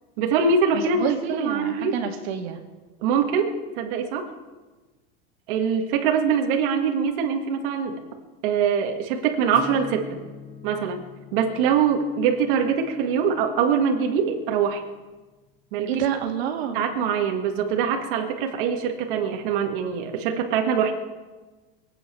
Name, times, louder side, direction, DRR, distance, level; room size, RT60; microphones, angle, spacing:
voice 1, 0.2-2.0 3.0-4.3 5.5-8.0 8.4-10.2 10.6-11.1 11.3-14.8 15.7-16.0 16.7-20.9, right 6 dB, 60° right, 3 dB, 1.8 m, -23 dB
voice 2, 0.7-2.6 15.9-16.8, right 8 dB, 90° right, 4 dB, 2.0 m, -28 dB
Acoustic guitar / Strum, 9.5-15.0, left 3 dB, 45° left, 3.4 m, -43 dB
21.5 x 8.4 x 6.8 m, 1.2 s
supercardioid pair, 170°, 30 cm